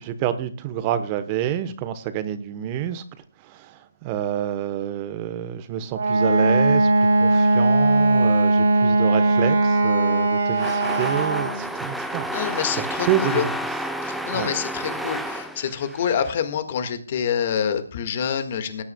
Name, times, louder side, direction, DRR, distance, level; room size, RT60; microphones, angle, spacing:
voice 1, 0.0-3.0 3.4-12.4 12.8-13.5 14.3-14.5, right 10 dB, 25° right, 1.0 m, -28 dB
Wind instrument woodwind instrument, 5.9-11.6, right 2 dB, 65° right, 3.5 m, -19 dB
sound 1, 10.5-16.3, equal, ahead, 0.8 m, -30 dB
voice 2, 12.3-13.5 14.0-18.8, left 8 dB, 40° left, 1.7 m, -26 dB
19.5 x 9.8 x 2.3 m
figure-of-eight pair, 150°, 0 cm